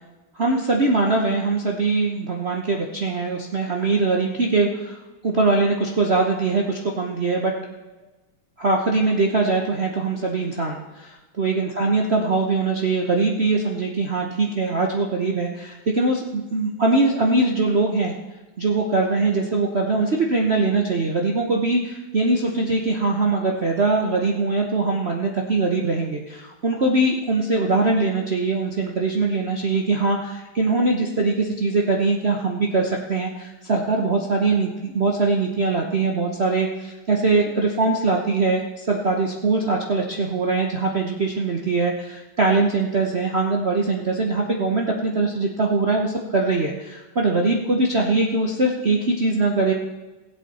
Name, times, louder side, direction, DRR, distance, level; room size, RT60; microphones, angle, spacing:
voice 1, 0.4-5.0 5.2-7.5 8.6-18.1 18.6-49.7, right 3 dB, 40° right, 0 dB, 0.9 m, -22 dB
17.0 x 8.2 x 4.3 m, 1.2 s
omnidirectional pair, 2.3 m